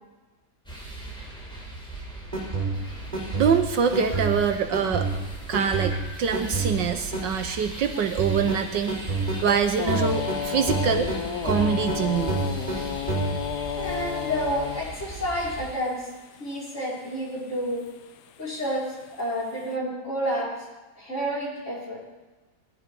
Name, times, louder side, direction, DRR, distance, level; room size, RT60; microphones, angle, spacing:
sound 1, 0.7-15.7, right 1 dB, ahead, 4.2 m, -39 dB
sound 2, 2.2-7.2 8.2-10.4 10.7-11.2 11.5-12.0 12.3-12.8 13.1-13.6, right 3 dB, 20° right, 4.3 m, -29 dB
voice 1, 3.4-5.1 5.5-9.0 9.4-11.1 11.4-12.4, right 7 dB, 70° right, 7 dB, 1.5 m, -24 dB
sound 3, 9.8-16.8 17.5-18.0 18.3-19.5, left 9 dB, 65° left, 1.2 m, -32 dB
voice 2, 13.8-16.1 16.4-17.9 18.4-20.5 21.0-22.0, equal, 35° left, -5 dB, 6.0 m, -30 dB
19.5 x 11.5 x 5.4 m, 1.2 s
omnidirectional pair, 2.1 m